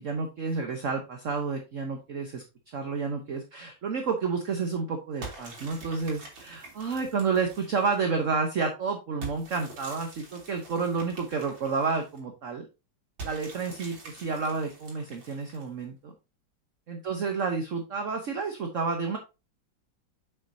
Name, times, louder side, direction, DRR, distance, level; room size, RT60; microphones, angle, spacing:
voice 1, 0.0-12.7 13.2-16.1 16.9-19.2, right 5 dB, 50° right, 4 dB, 1.2 m, -30 dB
sound 1, 5.2-8.1 9.2-12.2 13.2-15.8, right 3 dB, 75° right, 3.3 m, -45 dB
8.3 x 6.2 x 2.7 m, 0.27 s
omnidirectional pair, 2.1 m